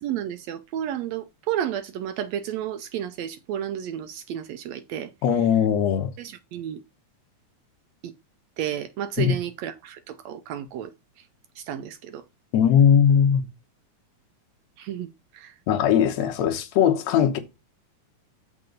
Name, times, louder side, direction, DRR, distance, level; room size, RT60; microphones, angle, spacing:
voice 1, 0.0-5.1 6.2-6.8 8.0-8.1 8.6-10.9 11.2-11.3 11.5-12.2 14.8-15.5, right 10 dB, 80° right, 1.5 m, -32 dB
voice 2, 5.2-6.1 9.2-9.3 12.5-13.5 15.7-17.4, left 8 dB, 65° left, 2.1 m, -19 dB
6.9 x 5.4 x 5.0 m
omnidirectional pair, 3.7 m